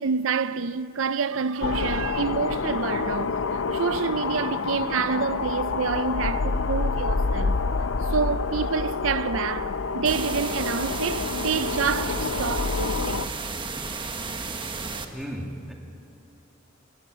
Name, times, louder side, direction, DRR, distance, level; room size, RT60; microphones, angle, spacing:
voice 1, 0.0-7.6 8.1-13.2 15.3-15.4, right 5 dB, 80° right, 0.5 m, -28 dB
sound 1, 1.6-13.3, left 4 dB, 75° left, 0.6 m, -28 dB
sound 2, 10.0-15.0, right 4 dB, 25° right, 1.1 m, -33 dB
voice 2, 15.1-15.7, equal, ahead, 2.2 m, -35 dB
28.5 x 16.0 x 6.2 m
head